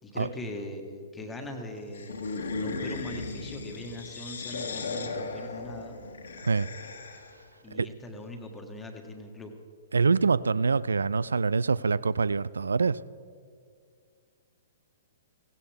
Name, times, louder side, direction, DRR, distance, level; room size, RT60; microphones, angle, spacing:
voice 1, 0.0-6.0 7.6-9.5, left 1 dB, 10° left, 2 dB, 1.6 m, -41 dB
sound 1, 1.9-7.4, left 3 dB, 65° left, 1.5 m, -36 dB
voice 2, 9.9-13.0, right 4 dB, 75° right, 20 dB, 0.3 m, -25 dB
17.0 x 16.0 x 3.5 m, 2.2 s
figure-of-eight pair, 115°, 0 cm